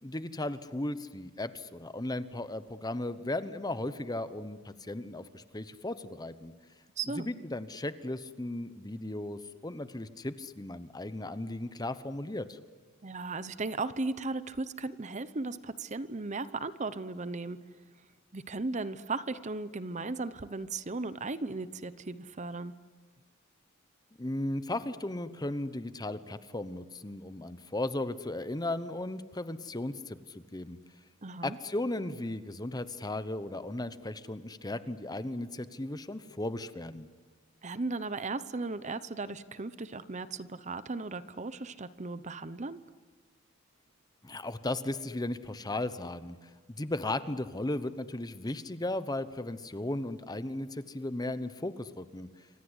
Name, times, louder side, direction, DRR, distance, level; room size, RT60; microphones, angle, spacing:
voice 1, 0.0-6.5 7.1-12.6 24.2-30.8 31.4-37.1 44.2-52.3, left 1 dB, 20° left, 12 dB, 0.9 m, -36 dB
voice 2, 7.0-7.3 13.0-17.6 18.3-22.7 31.2-31.6 37.6-42.8, right 3 dB, 35° right, 14 dB, 0.8 m, -36 dB
28.0 x 25.5 x 8.1 m, 1.5 s
head